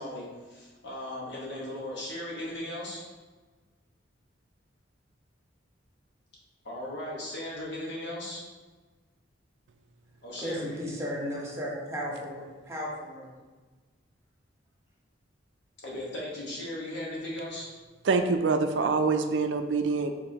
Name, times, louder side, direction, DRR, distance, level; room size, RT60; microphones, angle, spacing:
voice 1, 0.0-3.0 6.6-8.4 10.2-10.7 15.8-17.7, left 1 dB, 65° left, -5 dB, 1.4 m, -37 dB
voice 2, 10.4-13.3, equal, 15° right, -4 dB, 1.0 m, -35 dB
voice 3, 18.0-20.1, right 4 dB, 65° right, 7 dB, 0.4 m, -25 dB
5.1 x 3.5 x 2.9 m, 1.3 s
head